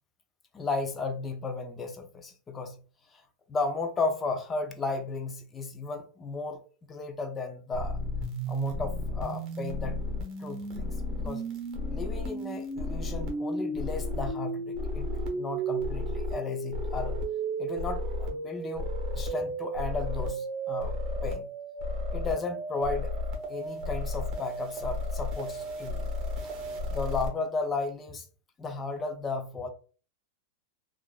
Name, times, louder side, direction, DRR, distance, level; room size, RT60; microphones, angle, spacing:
voice 1, 0.5-2.8 3.1-3.2 3.5-6.6 6.9-8.0 8.5-10.1 10.4-11.4 11.9-17.2 17.6-18.8 19.1-20.9 21.2-21.5 22.1-23.1 23.5-26.1 26.9-28.3 28.6-29.7, left 3 dB, 20° left, 0.5 m, -34 dB
sound 1, 7.7-27.3, equal, 40° right, 0.9 m, -33 dB
2.9 x 2.4 x 2.3 m
supercardioid pair, 135°, 0 cm